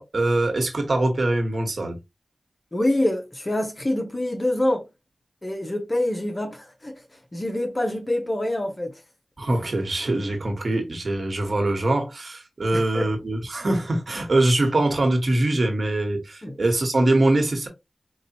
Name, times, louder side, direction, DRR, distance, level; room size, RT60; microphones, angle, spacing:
voice 1, 0.0-2.0 9.4-17.7, right 2 dB, 65° right, 1.6 m, -23 dB
voice 2, 2.7-4.8 5.4-9.0 12.7-13.1 16.4-16.6, left 1 dB, 35° left, 1.2 m, -26 dB
5.0 x 2.6 x 2.8 m
cardioid pair, 50°, 0 cm